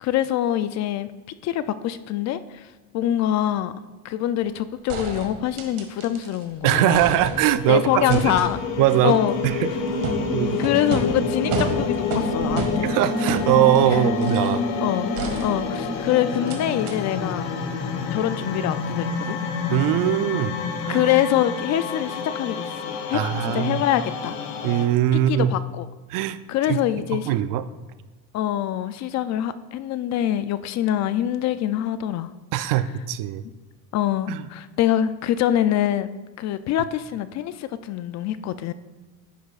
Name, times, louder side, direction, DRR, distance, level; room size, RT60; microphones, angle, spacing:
voice 1, 0.0-1.1 1.4-3.7 4.0-7.2 7.7-8.6 9.0-9.3 10.6-13.0 13.9-14.0 14.8-15.1 15.4-17.5 18.1-19.4 20.9-24.4 25.1-25.9 26.5-27.4 28.3-32.3 32.6-32.7 33.9-36.1 36.4-38.7, left 11 dB, 40° left, 13 dB, 0.4 m, -24 dB
sound 1, 4.4-4.5 4.9-6.4 6.7-7.7 8.1-14.6 15.2-16.0 16.5-16.6 16.9-17.0, right 5 dB, 65° right, 1.7 m, -32 dB
voice 2, 6.6-8.3 8.8-9.2 9.4-9.7 10.3-10.6 12.8-14.6 19.7-20.6 20.8-21.1 23.1-23.8 24.6-25.5 26.1-26.4 26.7-26.8 27.3-27.6 32.5-33.4 34.3-34.4, right 13 dB, 50° right, 13 dB, 0.5 m, -21 dB
sound 2, 7.1-24.8, left 4 dB, 80° left, 1.5 m, -28 dB
10.5 x 10.0 x 2.4 m, 1.2 s
supercardioid pair, 115°, 42 cm